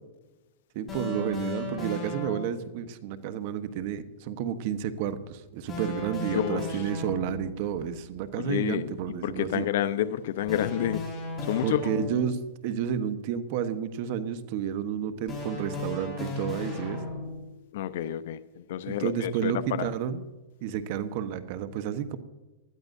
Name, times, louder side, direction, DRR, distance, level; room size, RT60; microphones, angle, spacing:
voice 1, 0.7-9.7 11.6-17.0 18.9-20.2 20.6-22.2, right 8 dB, 50° right, 1.2 m, -31 dB
sound 1, 0.9-2.7 5.7-7.6 10.5-12.4 15.3-17.5, left 2 dB, 20° left, 5.2 m, -36 dB
voice 2, 6.3-6.7 8.4-8.9 9.2-11.0 11.4-11.8 17.7-19.9, left 11 dB, 65° left, 0.8 m, -29 dB
20.0 x 13.0 x 2.7 m
supercardioid pair, 145°, 0 cm